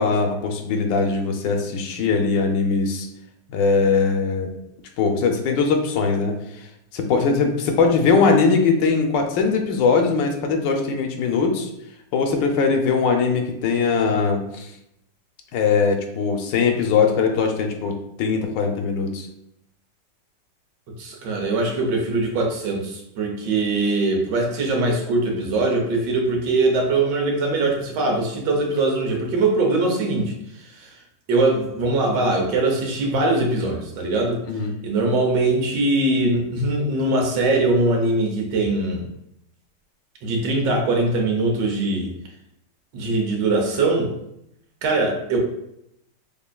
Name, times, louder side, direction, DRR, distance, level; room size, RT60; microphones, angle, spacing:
voice 1, 0.0-3.1 3.5-4.5 5.0-6.7 6.9-11.7 12.1-14.7 15.5-19.3 34.4-34.7, left 5 dB, 80° left, 4 dB, 1.3 m, -21 dB
voice 2, 21.0-30.3 30.6-30.9 31.3-34.4 34.8-39.0 40.2-42.1 42.9-44.1 44.8-45.4, right 2 dB, 75° right, 1 dB, 1.4 m, -22 dB
5.2 x 2.5 x 2.2 m, 0.78 s
omnidirectional pair, 1.9 m